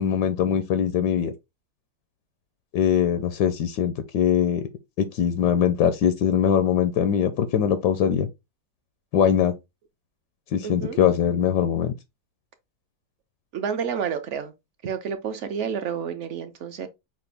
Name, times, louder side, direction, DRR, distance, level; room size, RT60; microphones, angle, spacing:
voice 1, 0.0-1.3 2.7-4.6 5.0-8.3 9.1-9.5 10.5-11.9, left 9 dB, 85° left, 1.2 m, -22 dB
voice 2, 10.6-11.0 13.5-14.5 14.8-16.9, right 7 dB, 65° right, 0.8 m, -30 dB
5.9 x 2.5 x 3.4 m
omnidirectional pair, 1.8 m